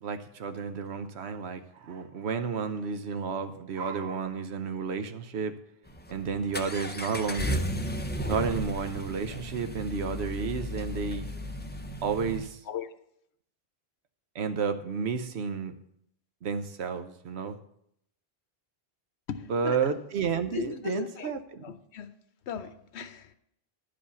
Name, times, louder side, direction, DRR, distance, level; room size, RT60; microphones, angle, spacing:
voice 1, 0.0-5.6 6.1-7.6 8.3-11.3 12.0-12.6 14.3-15.7 16.4-17.6 19.5-21.6, right 5 dB, 80° right, 1.1 m, -31 dB
Accelerating revving vroom, 5.9-12.5, equal, 10° left, 0.5 m, -34 dB
voice 2, 19.3-19.8 20.5-21.3 21.6-22.1 22.5-23.3, left 8 dB, 90° left, 1.0 m, -37 dB
11.5 x 5.1 x 6.9 m
omnidirectional pair, 1.1 m